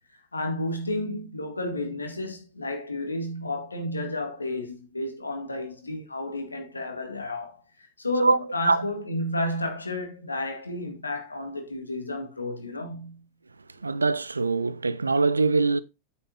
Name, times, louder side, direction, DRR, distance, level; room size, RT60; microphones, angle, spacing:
voice 1, 0.3-13.3, left 1 dB, 80° left, 2.1 m, -32 dB
voice 2, 13.8-15.8, right 3 dB, 80° right, 0.5 m, -22 dB
8.6 x 7.1 x 4.0 m
figure-of-eight pair, 90°, 0 cm